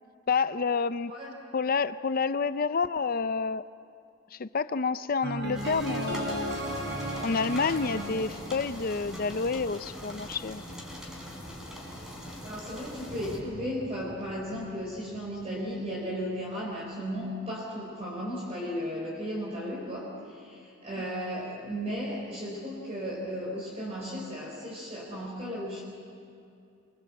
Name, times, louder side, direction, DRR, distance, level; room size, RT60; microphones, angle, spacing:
voice 1, 0.3-1.1 1.5-3.6 4.3-6.6 7.2-10.6, left 4 dB, 50° left, 13 dB, 0.6 m, -29 dB
sound 1, 5.2-9.3, right 1 dB, 70° right, 4.4 m, -35 dB
sound 2, 5.5-13.4, equal, 5° right, 4.0 m, -42 dB
voice 2, 12.4-25.8, equal, 35° right, -4 dB, 4.5 m, -35 dB
sound 3, 13.1-17.2, left 1 dB, 20° left, 3.5 m, -49 dB
25.5 x 24.0 x 7.7 m, 2.6 s
head